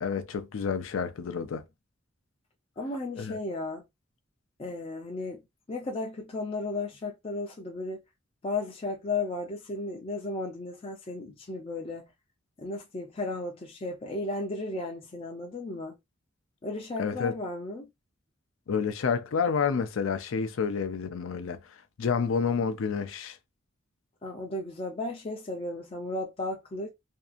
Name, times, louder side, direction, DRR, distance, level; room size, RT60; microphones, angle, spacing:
voice 1, 0.0-1.6 3.2-3.4 17.0-17.3 18.7-21.6 22.0-23.4, left 6 dB, 80° left, 0.5 m, -29 dB
voice 2, 2.8-3.8 4.6-5.4 5.7-8.0 8.4-12.1 12.6-16.0 16.6-17.9 24.2-26.9, left 2 dB, 30° left, 0.5 m, -34 dB
2.7 x 2.4 x 2.4 m
head